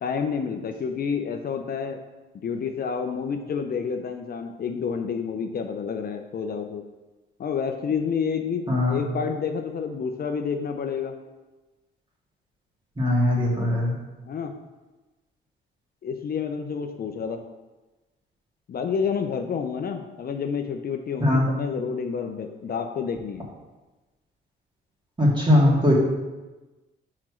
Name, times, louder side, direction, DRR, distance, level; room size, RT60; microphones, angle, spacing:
voice 1, 0.0-2.0 2.3-6.8 7.4-11.1 14.3-14.5 16.0-17.4 18.7-23.5, left 6 dB, 50° left, 5 dB, 0.7 m, -29 dB
voice 2, 8.7-9.0 13.0-13.9 21.2-21.4 25.2-25.9, left 1 dB, 25° right, -4 dB, 2.6 m, -20 dB
5.9 x 4.4 x 6.2 m, 1.1 s
cardioid pair, 90°, 20 cm